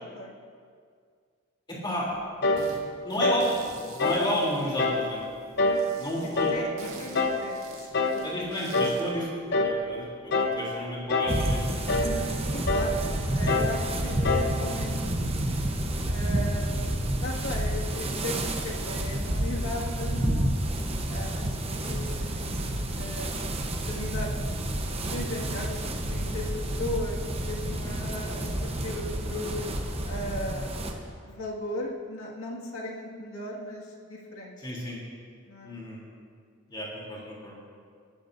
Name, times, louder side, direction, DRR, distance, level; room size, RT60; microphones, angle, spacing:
voice 1, 1.7-2.1 3.0-3.5 3.9-5.2 6.0-6.5 8.2-11.7 27.6-28.0 34.6-35.0 35.6-36.0 36.7-37.5, equal, 20° left, -5 dB, 3.2 m, -32 dB
sound 1, 2.4-2.7 3.2-3.5 4.0-4.3 4.8-5.1 5.6-5.9 6.3-6.7 7.1-7.4 7.9-8.2 8.7-9.0 9.5-9.8 10.3-10.6 11.1-11.4 11.9-12.2 12.7-13.0 13.5-13.8 14.2-14.6, left 2 dB, 55° left, 0.9 m, -25 dB
sound 2, 2.6-2.8 3.1-5.2 5.7-9.1, right 3 dB, 80° right, 1.8 m, -46 dB
voice 2, 6.2-7.6 8.0-8.5 12.0-13.0 13.3-15.4 16.1-16.7 17.2-20.6 21.1-22.4 22.9-23.5 23.9-24.5 25.1-27.2 27.5-29.6 30.1-30.7 31.2-34.6 35.5-35.7, left 1 dB, 75° left, -2 dB, 2.0 m, -37 dB
sound 3, 11.3-30.9, right 1 dB, 30° right, 0.9 m, -30 dB
18.5 x 13.0 x 2.7 m, 2.1 s
head